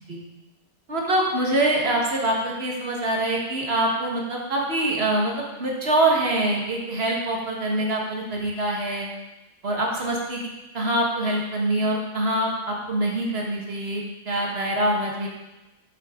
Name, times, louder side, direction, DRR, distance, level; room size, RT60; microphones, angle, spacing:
voice 1, 0.9-5.3 5.6-9.1 9.6-10.4 10.7-15.3, right 1 dB, 45° right, -2 dB, 1.7 m, -24 dB
8.1 x 7.6 x 3.8 m, 1.0 s
omnidirectional pair, 1.6 m